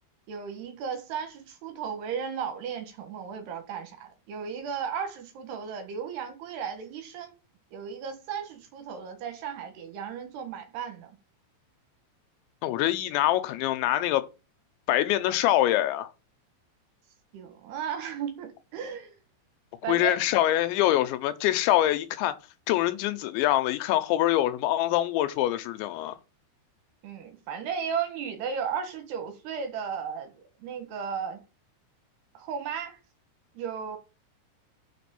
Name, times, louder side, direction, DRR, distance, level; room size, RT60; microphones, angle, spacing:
voice 1, 0.3-7.3 7.7-11.2 17.3-19.2 19.8-20.2 27.0-31.4 32.3-33.0 33.5-34.0, right 7 dB, 65° right, 3.3 m, -35 dB
voice 2, 12.6-14.2 14.9-16.1 19.9-22.4 22.7-26.2, left 14 dB, 80° left, 2.9 m, -24 dB
6.5 x 5.1 x 6.9 m
omnidirectional pair, 5.5 m